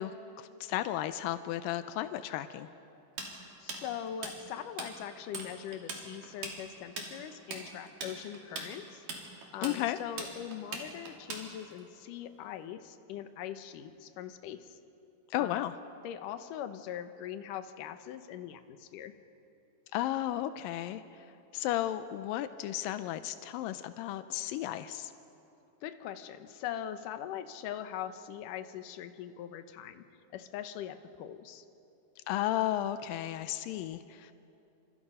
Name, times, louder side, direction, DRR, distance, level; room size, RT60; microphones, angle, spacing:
voice 1, 0.0-2.7 9.6-10.0 15.3-15.7 19.9-21.0 21.5-25.1 32.3-34.3, left 13 dB, 90° left, 11 dB, 1.9 m, -34 dB
Tools, 3.2-4.9 5.2-5.5 5.7-11.8, right 3 dB, 55° right, 4.3 m, -40 dB
voice 2, 3.6-9.0 9.5-14.8 15.4-15.6 16.0-19.2 25.8-30.0 30.3-31.6, left 10 dB, 70° left, 9 dB, 2.1 m, -41 dB
29.0 x 26.5 x 5.6 m, 2.8 s
omnidirectional pair, 4.8 m